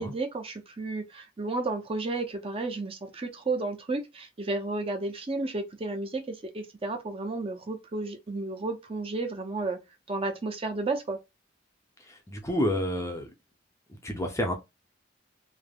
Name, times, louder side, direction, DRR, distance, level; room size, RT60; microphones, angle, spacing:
voice 1, 0.0-9.8 10.1-11.2, right 3 dB, 30° right, 0.5 m, -32 dB
voice 2, 12.1-13.3 14.0-14.5, left 1 dB, 15° left, 0.5 m, -29 dB
3.3 x 2.0 x 2.2 m
head